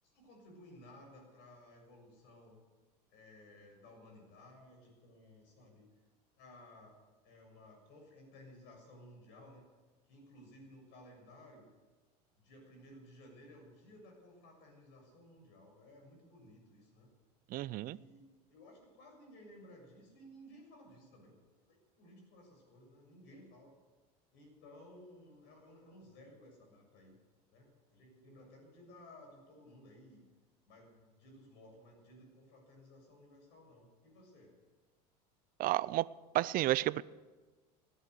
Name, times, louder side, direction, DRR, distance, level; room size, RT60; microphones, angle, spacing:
voice 1, 0.0-2.6 3.1-5.9 6.4-7.0 7.2-9.7 10.1-11.7 12.4-17.1 17.8-21.4 21.6-23.7 24.3-27.2 27.5-30.2 30.7-34.5, left 1 dB, 60° left, 7.0 m, -57 dB
voice 2, 17.5-18.0 35.6-36.1 36.3-37.0, right 16 dB, 45° right, 0.5 m, -31 dB
17.5 x 11.5 x 6.6 m
hypercardioid pair, 85°, 20 cm